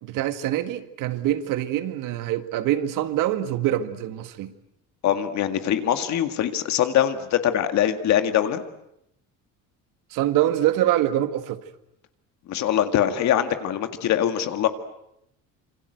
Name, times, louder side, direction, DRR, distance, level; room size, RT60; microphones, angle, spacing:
voice 1, 0.0-4.5 10.1-11.6, right 12 dB, 75° right, 1.9 m, -24 dB
voice 2, 5.0-8.6 12.5-14.7, left 10 dB, 60° left, 2.1 m, -23 dB
27.0 x 25.5 x 8.0 m
cardioid pair, 145°, 32 cm